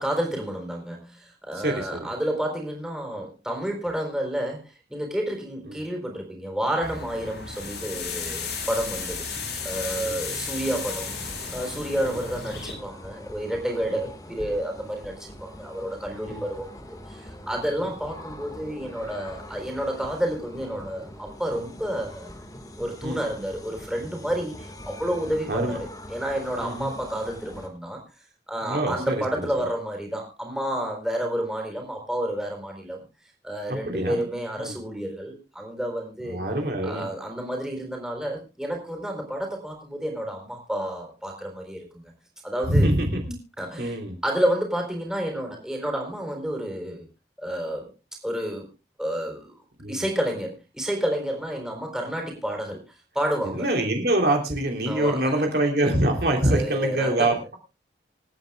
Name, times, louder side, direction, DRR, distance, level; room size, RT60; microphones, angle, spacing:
voice 1, 0.0-9.2 9.6-11.1 11.5-22.4 22.8-25.8 26.1-28.0 28.5-33.0 33.4-36.4 36.8-42.0 42.4-42.9 43.6-47.1 47.4-47.9 48.2-48.7 49.0-49.5 49.9-53.7 54.9-55.3 56.4-57.3, right 1 dB, 5° right, 1 dB, 4.0 m, -30 dB
voice 2, 1.5-2.1 9.4-9.5 10.0-10.2 12.0-12.2 13.9-14.0 16.3-16.4 23.0-23.2 25.5-25.8 26.6-26.9 28.6-29.2 33.7-34.3 34.6-34.8 36.2-37.1 42.7-43.4 43.8-44.2 49.8-50.0 53.4-57.6, right 1 dB, 65° right, 2 dB, 3.1 m, -25 dB
sound 1, 6.8-12.7, left 5 dB, 80° left, 6.1 m, -34 dB
sound 2, 10.6-27.7, left 1 dB, 20° left, 1.8 m, -43 dB
27.0 x 9.2 x 2.3 m, 0.28 s
head